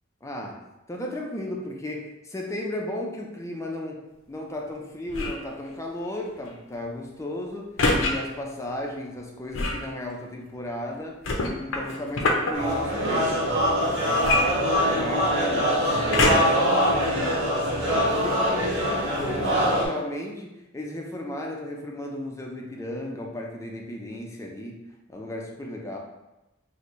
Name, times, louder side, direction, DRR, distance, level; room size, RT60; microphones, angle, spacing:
voice 1, 0.2-0.6 0.9-7.7 8.0-11.2 11.6-16.1 17.9-24.8 25.1-26.0, left 1 dB, 15° left, 0 dB, 0.4 m, -35 dB
sound 1, 5.1-5.5 7.8-8.1 9.5-9.9 11.2-12.5 14.2-15.2 16.1-16.7 17.3-17.4, left 2 dB, 75° left, 0.5 m, -24 dB
sound 2, 12.5-19.9, equal, 60° right, 1.2 m, -23 dB
4.1 x 2.1 x 3.1 m, 0.98 s
head